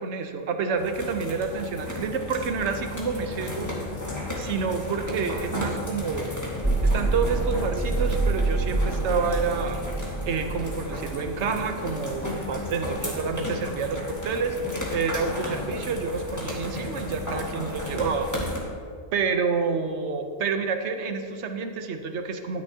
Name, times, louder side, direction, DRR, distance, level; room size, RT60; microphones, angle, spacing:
voice 1, 0.0-3.7 4.4-6.3 6.8-9.8 10.2-14.6 14.9-18.3 19.1-22.6, right 5 dB, 70° right, 7 dB, 1.0 m, -28 dB
sound 1, 0.7-18.6, left 1 dB, 15° left, 1.6 m, -34 dB
sound 2, 6.6-12.1, right 3 dB, 5° right, 0.5 m, -27 dB
11.5 x 9.8 x 2.8 m, 2.2 s
omnidirectional pair, 1.2 m